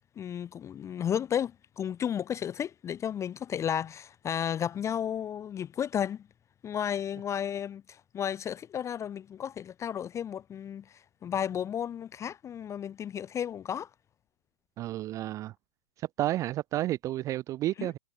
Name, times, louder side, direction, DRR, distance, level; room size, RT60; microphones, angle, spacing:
voice 1, 0.2-6.2 6.6-13.9 17.8-17.9, left 9 dB, 15° left, 1.0 m, -33 dB
voice 2, 14.8-15.5 16.2-18.0, right 14 dB, 20° right, 0.4 m, -31 dB
hypercardioid pair, 135°, 18 cm